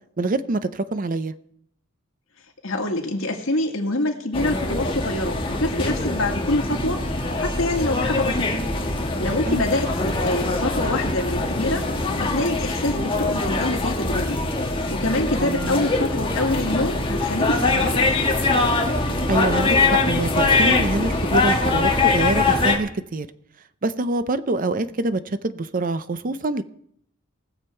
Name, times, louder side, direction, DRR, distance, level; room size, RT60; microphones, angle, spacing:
voice 1, 0.2-1.3 9.5-9.7 15.4-15.9 19.3-23.3 23.8-26.6, right 2 dB, 40° right, 0.6 m, -25 dB
voice 2, 2.6-7.0 7.4-8.6 9.2-11.9 12.2-14.4 14.9-18.4, left 2 dB, 80° left, 2.1 m, -26 dB
sound 1, 4.3-22.8, left 2 dB, 25° left, 1.5 m, -23 dB
19.5 x 7.3 x 4.4 m
head